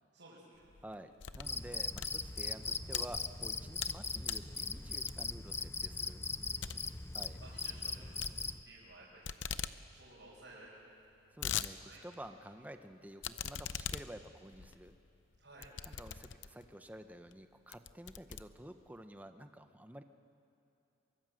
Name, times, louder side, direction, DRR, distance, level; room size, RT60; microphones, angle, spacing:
voice 1, 0.1-0.7 6.3-6.9 7.4-8.2 8.6-9.6 9.9-10.8 11.8-12.0 15.4-15.7, right 2 dB, 70° right, -7 dB, 5.6 m, -56 dB
sound 1, 0.6-1.6 1.9-3.0 3.5-4.0 4.2-4.5 5.1-5.4 5.8-5.9 6.2-6.3 6.6-6.8 7.1-7.4 8.2-8.9 9.2-9.8 10.1-10.2 10.4-10.5 11.0-11.7 12.1-12.2 13.2-16.7 17.3-17.4 17.7-19.0, left 9 dB, 70° left, 0.7 m, -41 dB
voice 2, 0.8-6.2 7.1-7.4 11.3-14.9 15.9-20.0, right 1 dB, 10° right, 8 dB, 0.9 m, -51 dB
Cricket, 1.4-8.6, left 4 dB, 15° left, 0.4 m, -39 dB
23.5 x 22.5 x 7.8 m, 2.9 s
head